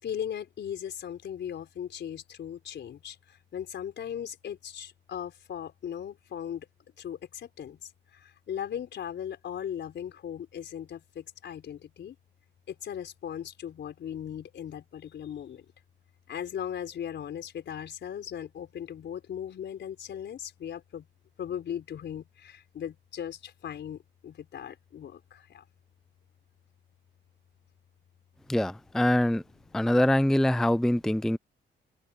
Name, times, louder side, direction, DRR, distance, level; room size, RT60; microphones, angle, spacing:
voice 1, 0.0-6.7 7.0-12.2 12.7-15.6 16.3-21.1 21.4-25.6, left 9 dB, 65° left, 4.6 m, -38 dB
voice 2, 28.5-29.4 29.7-31.4, left 1 dB, ahead, 0.5 m, -24 dB
open air
cardioid pair, 90°, 20 cm